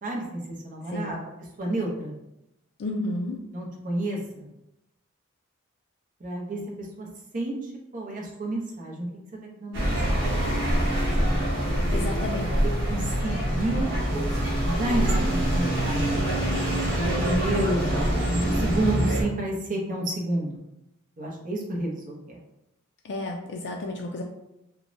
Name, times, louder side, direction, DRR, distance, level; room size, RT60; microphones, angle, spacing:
voice 1, 0.0-1.2 1.6-2.2 3.5-4.5 6.2-7.1 7.3-9.1 9.6-9.8 12.0-12.2 12.6-13.9 14.5-16.3 16.8-17.8 18.4-20.6 21.2-22.4, right 1 dB, 40° right, -2 dB, 0.6 m, -30 dB
voice 2, 0.9-1.2 2.8-3.4 11.9-12.7 23.0-24.2, left 2 dB, 55° left, 0 dB, 0.3 m, -32 dB
sound 1, 9.7-19.2, equal, 60° right, 0.9 m, -25 dB
3.0 x 2.1 x 2.5 m, 0.88 s
head